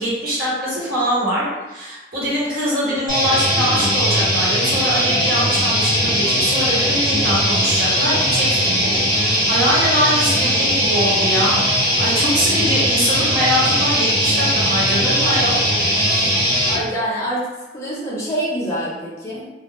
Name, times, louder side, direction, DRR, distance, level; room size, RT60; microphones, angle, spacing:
voice 1, 0.0-16.3, equal, 50° right, -8 dB, 1.0 m, -23 dB
sound 1, 3.1-16.8, equal, 20° right, 1.1 m, -19 dB
voice 2, 16.6-17.5 17.7-19.5, equal, 15° left, -7 dB, 0.6 m, -25 dB
2.3 x 2.0 x 3.0 m, 1.1 s
head